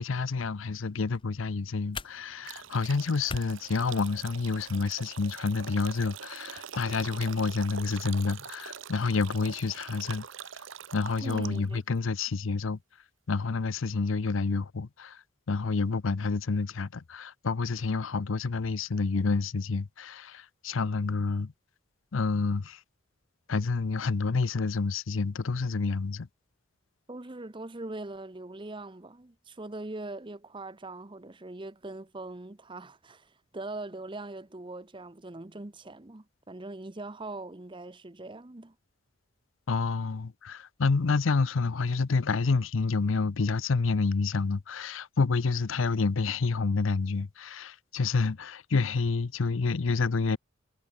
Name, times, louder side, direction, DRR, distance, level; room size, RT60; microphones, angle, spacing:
voice 1, 0.0-10.2 10.9-12.8 13.3-15.2 15.5-21.5 22.1-22.8 23.5-26.3 39.7-50.4, left 4 dB, 85° left, 0.6 m, -28 dB
sound 1, 0.8-4.8, left 3 dB, 25° left, 1.4 m, -45 dB
sound 2, 2.4-11.8, right 8 dB, 80° right, 1.0 m, -44 dB
voice 2, 11.2-11.8 27.1-38.7, right 2 dB, 25° right, 0.9 m, -41 dB
head